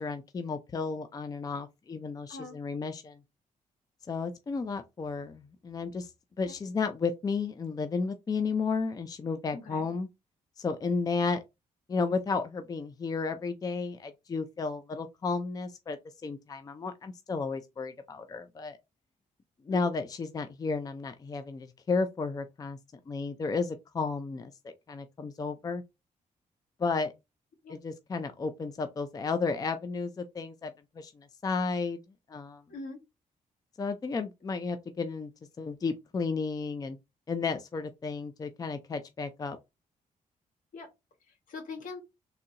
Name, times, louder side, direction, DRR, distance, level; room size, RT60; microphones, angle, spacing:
voice 1, 0.0-3.2 4.1-6.1 6.4-10.1 10.6-11.4 11.9-18.8 19.6-22.8 23.1-25.8 26.8-27.1 27.7-32.0 32.3-32.6 33.8-35.3 35.6-37.0 37.3-39.6, left 4 dB, 25° left, 0.4 m, -33 dB
voice 2, 9.5-9.9 19.7-19.9 27.6-27.8 32.7-33.0 40.7-40.9 41.5-42.0, left 3 dB, 75° left, 1.8 m, -42 dB
3.9 x 2.7 x 2.8 m
cardioid pair, 105°, 14 cm